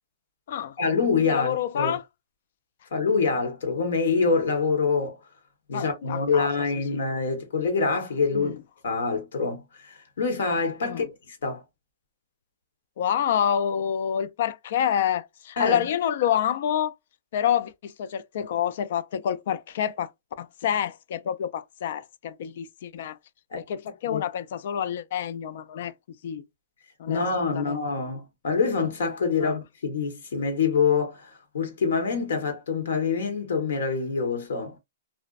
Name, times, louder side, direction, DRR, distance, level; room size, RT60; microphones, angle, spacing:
voice 1, 0.8-2.0 2.9-5.2 5.7-8.5 8.8-11.6 15.6-15.8 23.5-23.6 24.1-24.2 27.1-34.8, left 4 dB, 75° left, 1.1 m, -26 dB
voice 2, 1.3-2.0 5.7-6.5 8.3-8.6 10.8-11.1 13.0-16.9 17.3-20.1 20.4-23.2 23.5-25.9 26.2-26.4 27.0-27.8 29.4-29.5, left 9 dB, 55° left, 0.3 m, -28 dB
2.5 x 2.1 x 2.4 m
hypercardioid pair, 155°, 0 cm